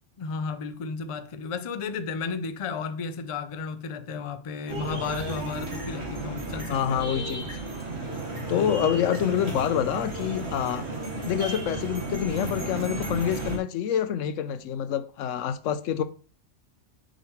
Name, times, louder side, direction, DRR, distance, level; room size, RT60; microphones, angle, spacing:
voice 1, 0.2-7.0 8.5-8.7, left 5 dB, 45° left, 0.4 m, -33 dB
sound 1, 4.7-13.6, right 2 dB, 60° right, 1.9 m, -33 dB
voice 2, 6.7-7.5 8.5-10.9 11.3-16.0, left 9 dB, 90° left, 1.0 m, -27 dB
6.4 x 5.2 x 3.1 m
omnidirectional pair, 1.3 m